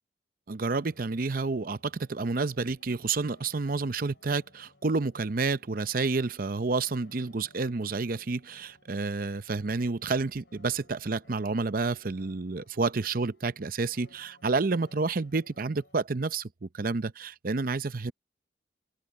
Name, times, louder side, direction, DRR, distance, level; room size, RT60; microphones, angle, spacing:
voice 1, 0.5-18.1, right 3 dB, 50° right, 0.7 m, -30 dB
sound 1, 0.7-16.1, left 2 dB, 75° left, 6.3 m, -63 dB
open air
head